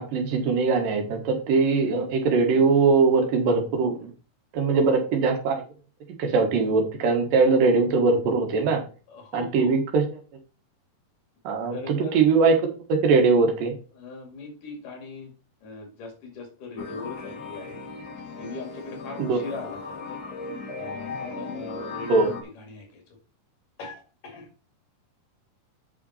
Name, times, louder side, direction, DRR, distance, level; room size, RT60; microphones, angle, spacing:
voice 1, 0.0-4.1 4.5-5.6 6.2-8.8 9.3-10.0 11.4-12.6 12.9-13.7 19.2-19.4 22.1-22.3, right 4 dB, 90° right, 3 dB, 3.2 m, -21 dB
voice 2, 9.1-9.8 11.7-12.2 14.0-15.3 15.6-17.8 18.4-20.2 20.8-23.2 23.8-24.5, left 3 dB, 70° left, 3 dB, 3.8 m, -39 dB
sound 1, 16.8-22.4, left 3 dB, 55° left, 1.1 m, -37 dB
8.4 x 5.9 x 4.2 m, 0.36 s
omnidirectional pair, 3.8 m